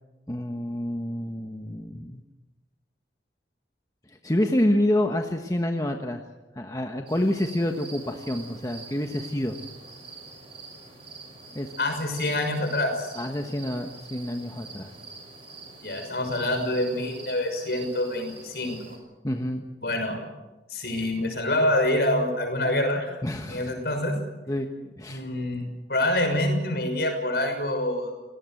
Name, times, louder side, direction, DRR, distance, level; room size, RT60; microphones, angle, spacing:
voice 1, 0.3-2.2 4.1-6.2 6.5-9.6 11.5-11.7 13.1-14.9 19.2-19.6 23.2-23.7 24.5-24.7 25.0-25.2, left 1 dB, 20° left, 4 dB, 1.3 m, -28 dB
sound 1, 7.1-19.0, right 4 dB, 30° right, 6.5 m, -45 dB
voice 2, 11.8-13.1 15.8-18.8 19.8-20.2 20.7-23.2 23.5-24.1 25.1-25.6 25.9-28.1, left 1 dB, 60° left, 5 dB, 6.2 m, -26 dB
28.0 x 18.5 x 7.9 m, 1.1 s
head